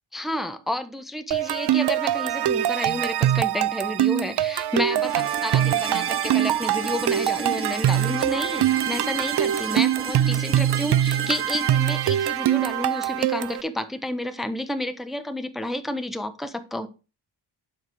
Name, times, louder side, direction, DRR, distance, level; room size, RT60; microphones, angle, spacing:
voice 1, 0.1-16.9, left 1 dB, ahead, 9 dB, 1.1 m, -30 dB
sound 1, 1.3-13.6, right 12 dB, 55° right, 0.5 m, -23 dB
sound 2, 5.0-13.0, right 4 dB, 30° right, 0.9 m, -34 dB
11.5 x 5.0 x 4.7 m, 0.31 s
cardioid pair, 70°, 47 cm